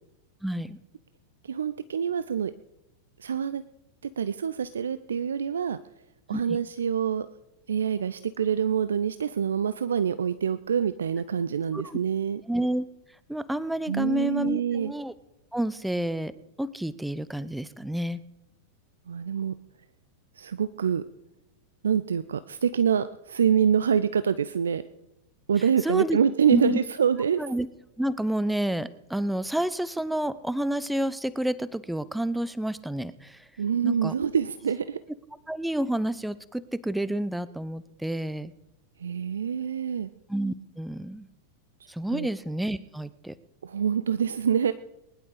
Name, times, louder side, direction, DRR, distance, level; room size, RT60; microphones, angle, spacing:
voice 1, 0.4-0.8 6.3-6.6 11.7-11.8 12.5-12.9 13.3-15.1 15.5-16.3 16.6-18.2 25.8-26.2 26.5-26.8 27.4-27.7 28.0-33.4 33.8-34.1 35.5-38.5 40.3-41.3 41.9-43.3, right 1 dB, 5° right, 17 dB, 0.7 m, -29 dB
voice 2, 1.4-2.5 3.2-3.6 4.2-5.8 6.3-7.3 7.7-12.4 13.9-14.9 19.1-19.5 20.4-21.0 21.8-24.8 25.5-27.4 33.6-35.0 39.0-40.1 42.1-42.3 43.6-44.7, right 7 dB, 70° right, 14 dB, 0.5 m, -26 dB
21.0 x 11.0 x 4.9 m, 0.93 s
figure-of-eight pair, 90°, 0 cm